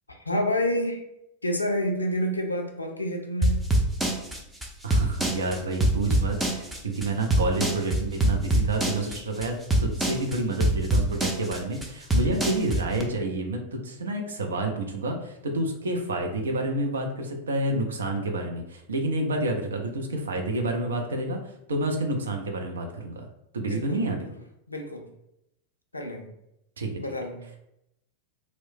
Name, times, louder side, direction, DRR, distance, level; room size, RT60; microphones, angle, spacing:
voice 1, 0.1-1.0 1.4-3.6 23.7-24.3 24.7-25.0 25.9-26.3 27.0-27.4, left 1 dB, 80° left, 3 dB, 0.4 m, -28 dB
sound 1, 3.4-13.0, right 1 dB, 10° right, 0.4 m, -24 dB
voice 2, 4.8-23.3 23.5-24.2 26.8-26.9, right 2 dB, 70° right, 3 dB, 0.4 m, -29 dB
2.9 x 2.1 x 2.6 m, 0.82 s
figure-of-eight pair, 90°, 0 cm